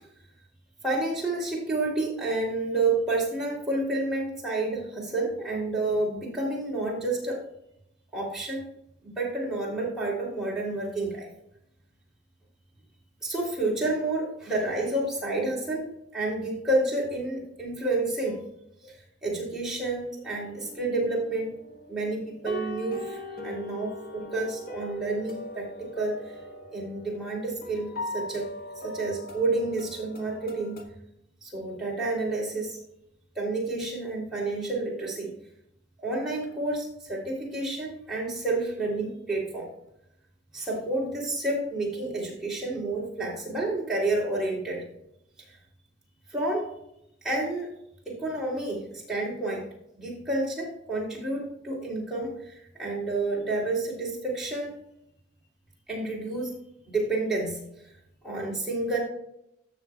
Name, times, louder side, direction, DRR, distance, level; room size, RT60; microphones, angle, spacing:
voice 1, 0.8-7.4 8.1-8.6 9.0-11.3 13.2-15.9 16.1-18.4 18.8-18.9 19.2-21.6 21.9-26.3 26.7-28.5 28.8-30.8 31.4-32.8 33.3-35.3 36.0-39.7 40.5-44.8 46.3-46.7 47.2-47.7 48.0-49.6 50.0-54.7 55.9-56.5 56.9-57.6 58.2-59.0, right 2 dB, 5° right, -5 dB, 3.1 m, -29 dB
sound 1, 20.2-30.8, left 1 dB, 50° left, 1.5 m, -41 dB
14.5 x 6.5 x 2.4 m, 0.78 s
head